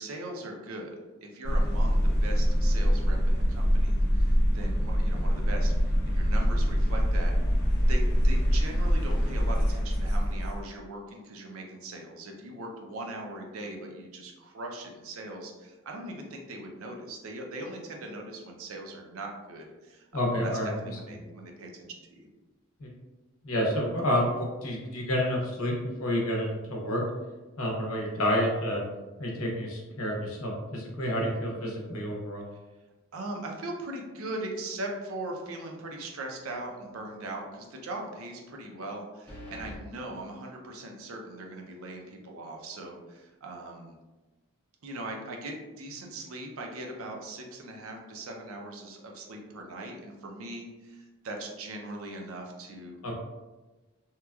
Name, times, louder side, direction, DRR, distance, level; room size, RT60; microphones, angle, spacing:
voice 1, 0.0-7.3 7.9-22.3 33.1-44.0 44.8-53.0, right 1 dB, 80° right, 1 dB, 0.5 m, -40 dB
sound 1, 1.4-10.6, equal, 50° left, 0.7 m, -24 dB
voice 2, 20.1-20.7 22.8-22.9 23.4-25.7 26.0-27.0 27.6-28.8 29.2-32.4 53.0-53.1, equal, 85° left, -1 dB, 0.7 m, -29 dB
sound 2, 36.3-36.6 37.0-37.1 39.3-39.8, left 1 dB, 5° left, 0.5 m, -44 dB
2.9 x 2.3 x 2.2 m, 1.1 s
head